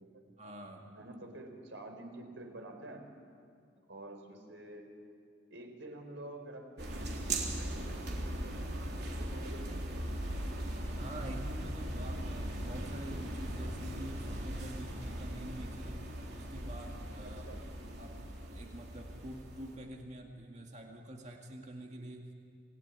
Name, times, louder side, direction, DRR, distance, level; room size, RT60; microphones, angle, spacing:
voice 1, 0.3-1.1 11.0-16.0 16.3-17.5 18.0-22.3, right 1 dB, 35° right, 1 dB, 2.1 m, -47 dB
voice 2, 0.9-3.0 3.9-4.9 5.5-10.0 17.2-17.6, right 1 dB, 80° right, 3 dB, 4.4 m, -49 dB
sound 1, 6.8-19.7, right 1 dB, 60° right, 3.6 m, -39 dB
27.0 x 18.0 x 9.7 m, 2.2 s
head